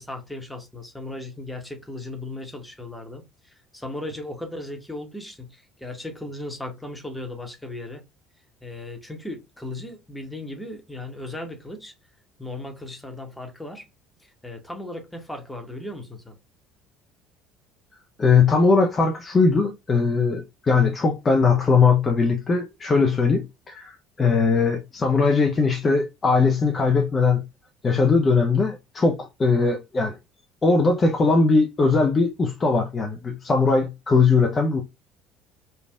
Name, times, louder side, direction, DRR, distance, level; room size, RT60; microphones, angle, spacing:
voice 1, 0.0-8.0 8.6-11.9 12.4-13.9 14.4-16.4, left 1 dB, 5° left, 1.0 m, -36 dB
voice 2, 18.2-27.4 27.8-30.2 30.6-34.8, left 4 dB, 30° left, 0.5 m, -20 dB
3.3 x 2.3 x 2.3 m
figure-of-eight pair, 60°, 0 cm